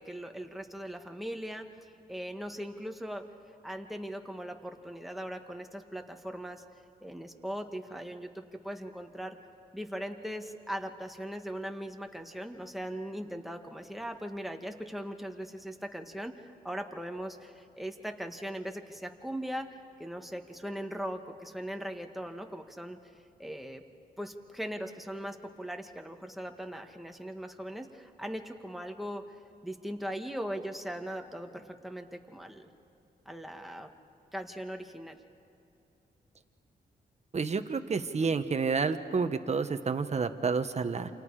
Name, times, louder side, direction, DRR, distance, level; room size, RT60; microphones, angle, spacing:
voice 1, 0.0-3.2 3.6-6.6 7.0-9.4 9.7-19.7 20.0-23.0 23.4-23.8 24.2-29.2 29.6-32.7 33.3-33.9 34.3-35.2, equal, ahead, 4 dB, 1.8 m, -39 dB
voice 2, 37.3-41.1, right 5 dB, 40° right, 9 dB, 1.4 m, -29 dB
29.0 x 27.5 x 5.0 m, 2.8 s
cardioid pair, 95°, 17 cm